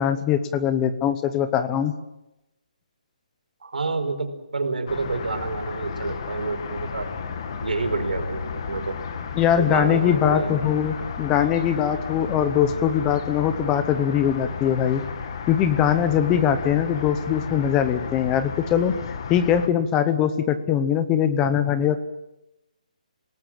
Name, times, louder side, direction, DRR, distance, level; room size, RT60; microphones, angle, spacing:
voice 1, 0.0-1.9 9.4-15.0 15.5-18.9 19.3-22.0, left 9 dB, 10° left, 11 dB, 0.8 m, -22 dB
voice 2, 3.6-7.1 7.6-9.0 9.6-10.7, right 3 dB, 85° right, 6 dB, 4.8 m, -28 dB
sound 1, 4.9-19.7, left 5 dB, 35° left, 2.1 m, -33 dB
27.5 x 18.5 x 7.6 m, 0.92 s
hypercardioid pair, 175°, 4 cm